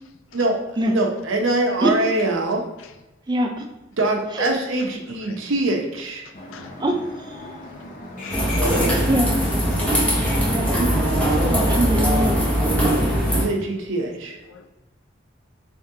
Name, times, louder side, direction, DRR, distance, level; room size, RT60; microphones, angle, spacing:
voice 1, 0.9-2.6 4.0-6.2 13.3-14.4, right 2 dB, 80° right, 1 dB, 0.7 m, -23 dB
sound 1, 6.3-12.7, left 2 dB, 40° left, 0.7 m, -37 dB
voice 2, 8.2-8.6 9.7-10.1 11.4-11.6 13.2-13.4 14.5-14.7, left 6 dB, 80° left, 7 dB, 0.5 m, -45 dB
sound 2, 8.3-13.4, equal, 5° left, 0.7 m, -20 dB
voice 3, 10.1-10.9 11.5-12.3, right 1 dB, 20° right, 3 dB, 0.4 m, -23 dB
3.6 x 3.5 x 2.8 m, 1.0 s
head